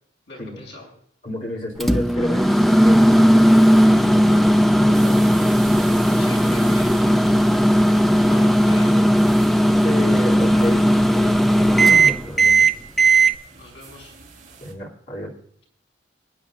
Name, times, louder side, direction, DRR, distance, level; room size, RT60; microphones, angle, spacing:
voice 1, 0.3-0.9 6.1-6.9 7.7-9.1 13.6-14.2, left 1 dB, 65° left, -1 dB, 6.2 m, -41 dB
voice 2, 1.2-3.4 3.7-5.3 9.8-12.7 14.6-15.3, left 1 dB, 40° left, -1 dB, 2.7 m, -31 dB
Microwave oven, 1.8-13.3, right 1 dB, ahead, 0.4 m, -16 dB
sound 1, 4.9-14.7, right 6 dB, 45° right, 3.0 m, -43 dB
27.0 x 9.6 x 2.4 m, 0.64 s
head